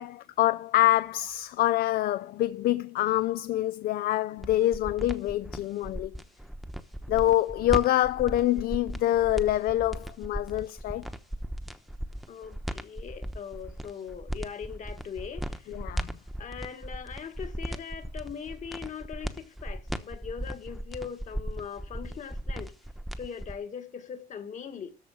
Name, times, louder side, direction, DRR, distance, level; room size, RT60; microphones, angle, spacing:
voice 1, 0.0-6.1 7.1-11.1 15.7-16.2, left 14 dB, 65° left, 0.4 m, -26 dB
sound 1, 4.4-23.6, equal, ahead, 0.9 m, -37 dB
voice 2, 12.3-15.8 16.4-22.7 23.2-25.0, left 7 dB, 45° left, 1.9 m, -40 dB
13.5 x 4.6 x 7.3 m
cardioid pair, 110°, 17 cm